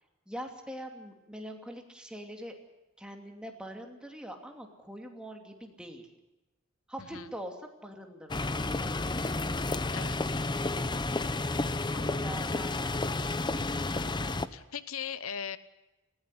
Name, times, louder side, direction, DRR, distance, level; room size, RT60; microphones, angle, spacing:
voice 1, 0.3-2.5 3.0-6.1 6.9-8.8 12.0-13.5, equal, 5° right, 2 dB, 2.7 m, -43 dB
sound 1, 8.3-14.5, left 2 dB, 20° left, 0.7 m, -31 dB
voice 2, 11.9-12.3 14.5-15.6, left 7 dB, 85° left, 14 dB, 0.9 m, -39 dB
19.5 x 16.0 x 9.7 m, 1.0 s
head